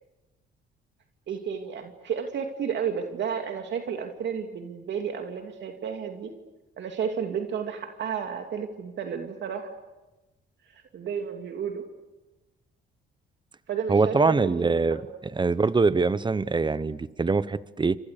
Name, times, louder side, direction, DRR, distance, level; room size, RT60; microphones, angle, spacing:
voice 1, 1.3-6.3 6.8-9.7 10.7-11.8 13.7-14.8, right 7 dB, 65° right, 4 dB, 2.7 m, -32 dB
voice 2, 13.9-15.0 15.4-18.0, right 4 dB, 25° right, 16 dB, 1.0 m, -23 dB
29.5 x 26.0 x 6.8 m, 1.1 s
cardioid pair, 90°, 20 cm